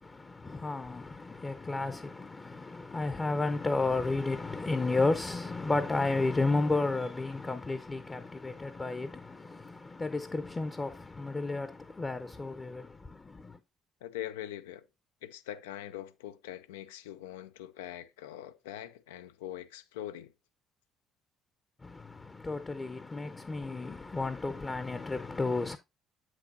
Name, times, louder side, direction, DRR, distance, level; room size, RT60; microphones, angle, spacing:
voice 1, 0.0-13.6 21.8-25.8, left 3 dB, 25° left, 0.6 m, -32 dB
voice 2, 14.0-14.9 15.2-20.3, left 12 dB, 85° left, 0.3 m, -42 dB
7.6 x 6.1 x 2.6 m
hypercardioid pair, 55°, 0 cm